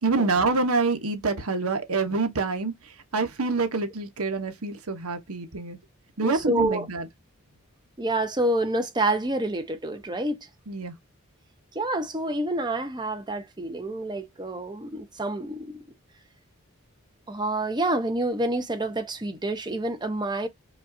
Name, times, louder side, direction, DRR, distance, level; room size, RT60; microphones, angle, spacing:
voice 1, 0.0-5.8 6.2-7.1 10.7-10.9, right 3 dB, 90° right, 1.0 m, -26 dB
voice 2, 6.2-6.9 8.0-10.5 11.7-15.8 17.3-20.5, right 1 dB, 20° right, 0.8 m, -28 dB
5.2 x 2.5 x 2.6 m
head